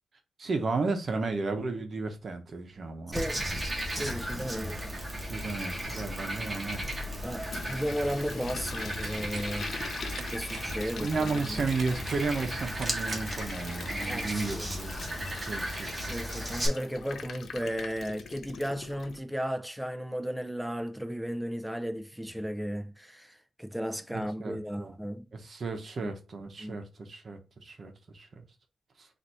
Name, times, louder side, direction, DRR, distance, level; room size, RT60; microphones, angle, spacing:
voice 1, 0.4-3.2 4.0-4.4 5.1-7.5 11.0-15.0 15.3-16.2 24.1-24.9 25.3-28.4 29.0-29.1, right 3 dB, 55° right, 0.9 m, -34 dB
voice 2, 3.1-3.5 4.0-4.9 7.2-9.8 10.3-11.6 14.0-14.7 16.1-25.2 26.0-26.1 26.6-26.8, equal, 5° right, 0.5 m, -35 dB
Frog, 3.1-16.7, equal, 20° right, 1.4 m, -35 dB
Toilet flush, 6.5-19.2, left 5 dB, 75° left, 0.6 m, -44 dB
sound 1, 8.6-9.7 10.0-13.4 13.8-13.9, right 6 dB, 80° right, 0.6 m, -47 dB
4.0 x 2.7 x 4.5 m
cardioid pair, 95°, 0 cm